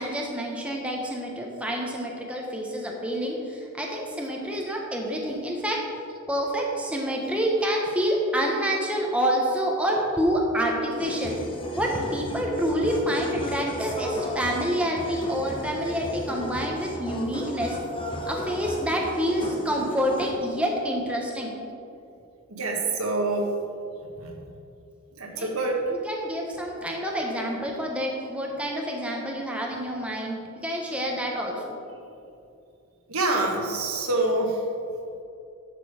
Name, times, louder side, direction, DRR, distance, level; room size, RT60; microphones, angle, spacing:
voice 1, 0.0-5.8 6.3-11.3 11.7-17.8 18.3-21.5 25.3-25.5 25.9-31.8, equal, 5° right, -1 dB, 1.0 m, -27 dB
sound 1, 11.0-20.3, left 1 dB, 25° left, 1.0 m, -34 dB
voice 2, 22.5-23.5 24.2-24.3 25.2-25.9 33.1-34.6, right 2 dB, 75° right, 1 dB, 1.5 m, -26 dB
11.5 x 6.9 x 4.9 m, 2.6 s
head